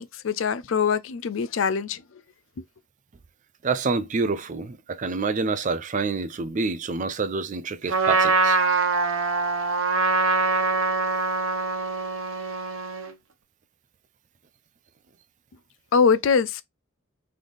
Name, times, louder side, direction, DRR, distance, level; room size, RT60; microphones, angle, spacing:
voice 1, 0.0-2.2 2.6-2.7 15.9-16.6, left 6 dB, 70° left, 0.4 m, -23 dB
voice 2, 3.6-8.6, right 4 dB, 40° right, 0.4 m, -27 dB
Trumpet, 7.9-13.1, right 3 dB, 85° right, 0.9 m, -23 dB
3.6 x 3.2 x 3.9 m
head